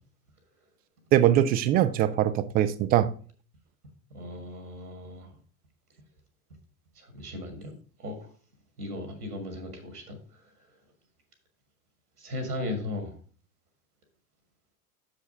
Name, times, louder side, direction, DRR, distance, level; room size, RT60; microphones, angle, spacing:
voice 1, 1.1-3.1, right 11 dB, 20° right, 0.3 m, -22 dB
voice 2, 4.1-5.3 7.1-7.7 8.0-8.3 8.8-10.2 12.2-13.1, left 1 dB, 85° right, 1.9 m, -36 dB
6.8 x 4.9 x 5.0 m
figure-of-eight pair, 75°, 44 cm